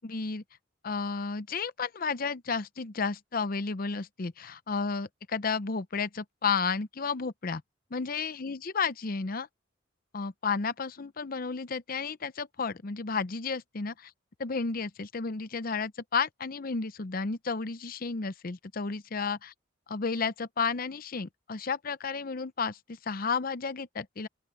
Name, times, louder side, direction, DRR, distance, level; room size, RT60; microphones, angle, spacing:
voice 1, 0.0-0.4 0.8-7.6 7.9-9.5 10.1-14.1 14.4-19.5 19.9-24.3, left 5 dB, 50° left, 0.7 m, -32 dB
open air
head